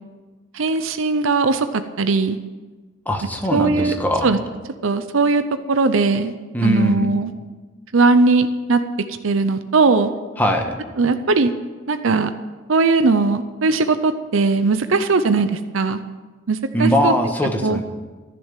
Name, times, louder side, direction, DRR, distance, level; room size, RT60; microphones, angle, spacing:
voice 1, 0.5-2.4 3.5-3.9 4.2-4.4 4.8-5.4 5.7-6.3 6.6-7.3 7.9-8.8 9.2-10.1 11.0-11.5 11.9-12.3 12.7-16.0 16.5-17.1 17.6-17.8, right 3 dB, 75° right, 10 dB, 0.6 m, -19 dB
voice 2, 3.0-4.3 6.5-7.1 10.4-10.7 16.7-17.8, equal, 10° left, 3 dB, 1.3 m, -20 dB
14.5 x 6.9 x 9.0 m, 1.3 s
head